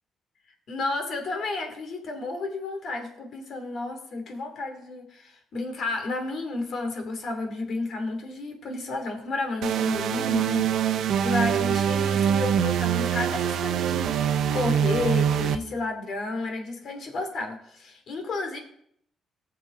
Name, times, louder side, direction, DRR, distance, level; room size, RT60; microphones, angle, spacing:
voice 1, 0.7-10.6 10.9-18.6, left 2 dB, 60° left, 4 dB, 2.6 m, -32 dB
sound 1, 9.6-15.5, right 9 dB, 75° right, 0.7 m, -24 dB
18.0 x 6.9 x 3.8 m, 0.70 s
cardioid pair, 90°, 0 cm